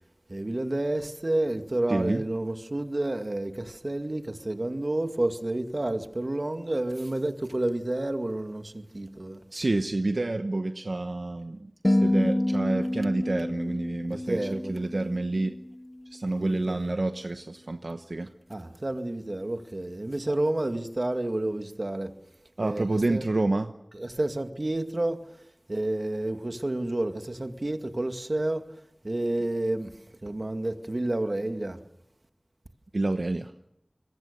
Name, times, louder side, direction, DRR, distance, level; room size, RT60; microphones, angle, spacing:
voice 1, 0.3-9.4 14.1-14.8 16.4-16.9 18.5-22.1 22.6-23.2 23.9-25.4 25.7-28.6 29.0-29.9 30.2-31.8, right 1 dB, 55° right, 2.1 m, -30 dB
voice 2, 1.9-2.2 9.5-14.4 14.7-15.6 16.1-18.3 22.6-23.7 32.9-33.5, right 2 dB, 80° right, 1.0 m, -28 dB
sound 1, 11.8-16.2, left 1 dB, 30° left, 1.3 m, -28 dB
28.0 x 22.0 x 6.8 m
wide cardioid pair, 50°, 0 cm